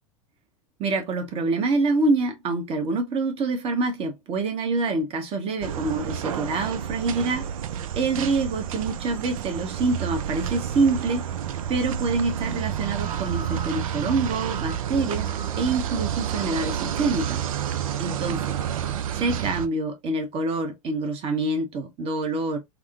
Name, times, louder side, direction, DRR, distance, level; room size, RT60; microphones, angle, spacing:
voice 1, 0.8-7.5 8.0-11.3 11.7-15.3 15.6-17.4 18.0-18.4 19.1-22.6, right 3 dB, 30° right, 0.9 m, -26 dB
sound 1, 5.6-19.7, right 9 dB, 70° right, 0.4 m, -30 dB
3.4 x 2.0 x 2.4 m
hypercardioid pair, 95°, 18 cm